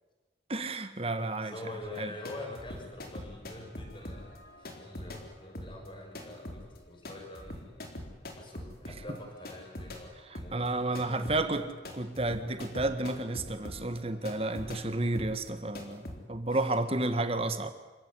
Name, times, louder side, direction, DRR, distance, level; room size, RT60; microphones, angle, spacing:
voice 1, 0.5-1.5 2.0-2.1 10.3-11.6 11.9-17.7, right 2 dB, 35° right, 10 dB, 1.7 m, -31 dB
voice 2, 1.4-7.8 8.3-11.2 16.5-16.7, left 2 dB, 30° left, 2 dB, 6.2 m, -45 dB
sound 1, 1.8-10.1 10.3-16.2, left 1 dB, 55° left, 4.1 m, -44 dB
27.5 x 16.5 x 9.8 m, 1.2 s
head